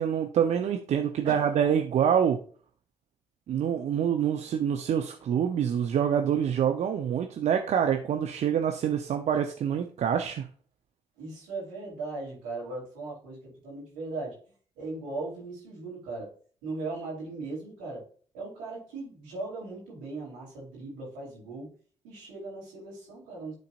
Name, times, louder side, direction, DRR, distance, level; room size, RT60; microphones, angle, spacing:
voice 1, 0.0-2.4 3.5-10.5, right 8 dB, 65° right, 5 dB, 0.8 m, -26 dB
voice 2, 11.2-14.4 14.8-16.3 16.6-18.1 18.3-21.7 22.0-23.6, right 3 dB, 85° right, -3 dB, 3.2 m, -38 dB
11.5 x 4.0 x 2.5 m, 0.43 s
hypercardioid pair, 50°, 13 cm